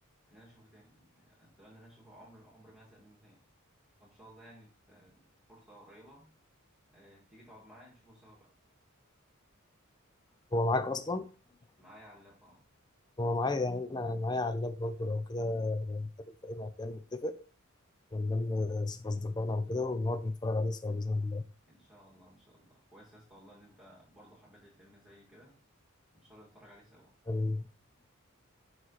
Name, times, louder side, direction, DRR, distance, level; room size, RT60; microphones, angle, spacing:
voice 1, 0.3-3.4 4.0-6.3 6.9-8.5 11.8-12.7 21.7-25.6 26.1-27.1, equal, 5° right, 2.1 m, -57 dB
voice 2, 10.5-11.3 13.2-16.1 16.4-17.3 18.1-21.5 27.3-27.7, left 2 dB, 20° left, 0.5 m, -32 dB
5.9 x 5.1 x 4.0 m
head